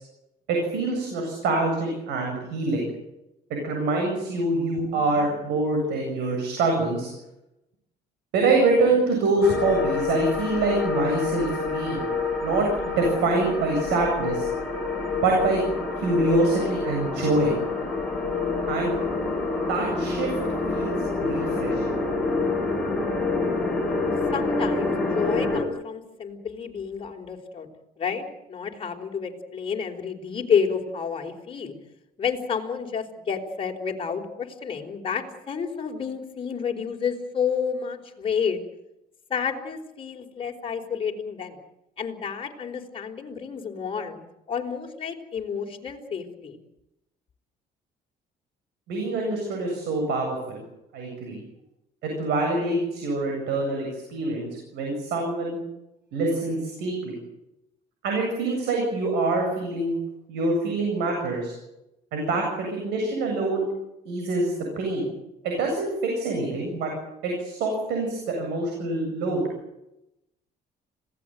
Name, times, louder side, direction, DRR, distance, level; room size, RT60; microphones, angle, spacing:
voice 1, 0.5-2.8 3.5-7.1 8.3-12.0 12.4-14.5 15.2-15.6 16.0-17.6 18.7-18.9 19.7-20.3 20.7-22.0 48.9-50.6 50.9-51.4 52.0-54.5 54.7-55.6 56.1-57.2 58.0-60.0 60.3-61.5 62.1-63.7 64.1-65.1 65.4-66.9 67.2-69.4, right 2 dB, 85° right, 2 dB, 7.8 m, -25 dB
sound 1, 9.4-25.6, left 3 dB, ahead, 7.6 m, -27 dB
voice 2, 24.3-27.7 28.0-31.7 32.2-38.6 39.3-41.6 42.0-44.2 44.5-46.6, left 6 dB, 30° left, 2 dB, 4.7 m, -30 dB
26.5 x 18.0 x 9.4 m, 0.90 s
cardioid pair, 110°, 17 cm